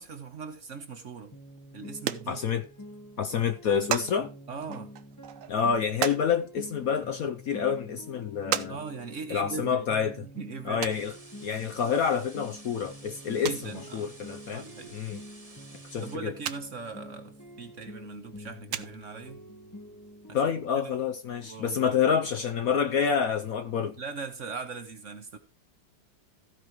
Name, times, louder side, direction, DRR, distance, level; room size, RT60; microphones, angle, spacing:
voice 1, 0.0-1.4 1.7-2.4 4.5-4.9 8.7-9.9 10.2-10.9 13.4-14.1 14.5-15.0 16.0-19.4 20.3-20.4 20.8-20.9 21.4-22.1 24.0-25.4, right 4 dB, 45° right, 1.2 m, -40 dB
sound 1, 1.3-20.7, left 1 dB, 10° left, 1.0 m, -47 dB
sound 2, 1.6-1.7 1.9-2.9 3.1-3.2 3.5-4.1 4.6-6.2 7.1-7.2 7.7-7.8 8.5-8.7 9.0-9.1 10.8-11.0 12.2-12.3 12.7-12.8 13.0-13.1 13.5-13.7 15.1-15.2 15.6-15.7 16.5-16.6 16.9-17.0 18.2-18.4 18.7-19.1 20.1-20.2 20.3-20.4 20.6-20.7, right 10 dB, 70° right, 0.8 m, -33 dB
voice 2, 2.3-2.6 3.2-4.3 5.5-8.8 9.3-10.2 10.6-11.2 11.4-14.6 14.9-15.2 15.9-16.3 20.3-24.0, left 7 dB, 60° left, 1.0 m, -28 dB
sound 3, 10.9-16.2, right 2 dB, 20° right, 1.5 m, -52 dB
15.0 x 5.2 x 4.7 m
omnidirectional pair, 2.0 m